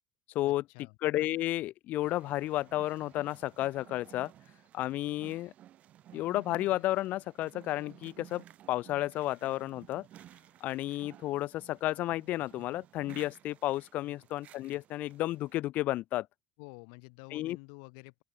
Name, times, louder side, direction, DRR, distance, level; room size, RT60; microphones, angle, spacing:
voice 1, 0.4-1.0 14.0-14.1 16.6-18.2, left 40 dB or more, 80° left, 4.2 m, -50 dB
voice 2, 1.0-4.3 4.7-5.5 6.1-10.1 10.6-16.3 17.3-17.6, left 16 dB, 50° left, 1.0 m, -32 dB
sound 1, 2.0-15.5, right 12 dB, 40° right, 2.8 m, -56 dB
open air
cardioid pair, 165°, 4 cm